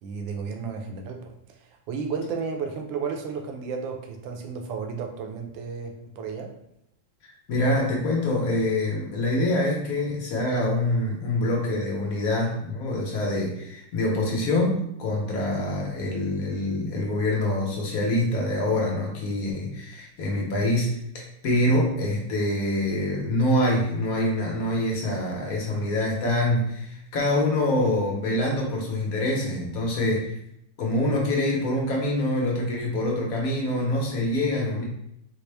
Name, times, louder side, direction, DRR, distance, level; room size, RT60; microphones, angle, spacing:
voice 1, 0.0-6.5, right 5 dB, 80° right, 3 dB, 1.3 m, -33 dB
voice 2, 7.2-30.4 30.8-34.8, left 1 dB, 60° left, -2 dB, 1.0 m, -25 dB
4.2 x 2.0 x 3.2 m, 0.77 s
omnidirectional pair, 2.1 m